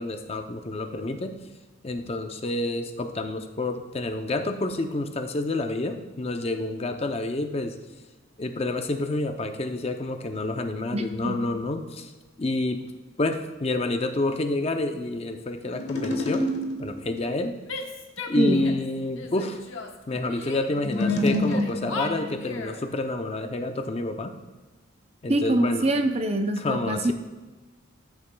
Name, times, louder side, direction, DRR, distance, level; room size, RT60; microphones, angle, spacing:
voice 1, 0.0-1.4 1.8-7.8 8.4-12.1 12.4-12.8 13.2-16.5 16.8-17.6 18.3-19.6 20.1-24.3 25.2-25.9 26.6-27.1, left 2 dB, 30° left, 6 dB, 0.5 m, -28 dB
voice 2, 10.9-11.4 18.4-18.6 25.3-27.1, right 1 dB, 30° right, 6 dB, 0.6 m, -24 dB
sound 1, 15.7-17.1 20.7-22.5, left 1 dB, 60° left, 1.2 m, -27 dB
Female speech woman speaking / Yell, 17.7-18.9 19.2-20.6 21.0-22.8, left 4 dB, 80° left, 1.0 m, -37 dB
14.0 x 6.9 x 2.2 m, 1.2 s
head